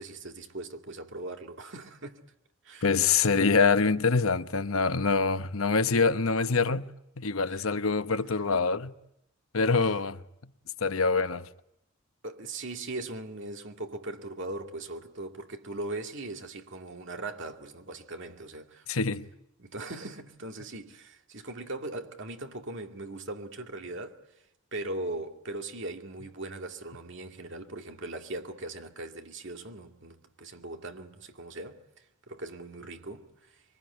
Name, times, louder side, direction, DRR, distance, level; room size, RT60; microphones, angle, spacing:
voice 1, 0.0-2.2 2.6-2.9 3.3-3.6 7.5-7.6 12.2-18.9 19.6-24.2 24.7-31.8 32.3-33.6, right 2 dB, 60° right, 2.3 m, -39 dB
voice 2, 2.8-6.9 7.2-8.9 9.5-10.2 10.8-11.5 18.9-19.3, left 4 dB, 80° left, 1.0 m, -25 dB
25.0 x 24.0 x 9.5 m
head